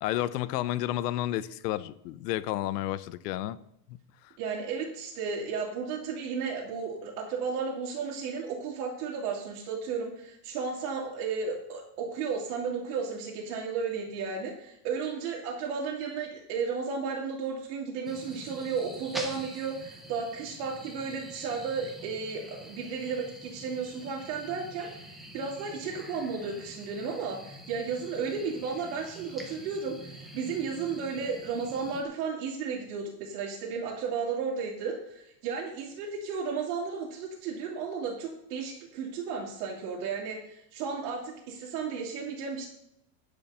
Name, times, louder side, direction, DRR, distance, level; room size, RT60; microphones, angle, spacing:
voice 1, 0.0-3.6 3.9-4.0, left 14 dB, 90° left, 17 dB, 0.8 m, -31 dB
voice 2, 4.4-42.7, right 5 dB, 85° right, -5 dB, 2.5 m, -34 dB
sound 1, 18.0-32.0, right 1 dB, ahead, 0.5 m, -46 dB
10.5 x 5.2 x 6.9 m, 0.77 s
supercardioid pair, 175°, 46 cm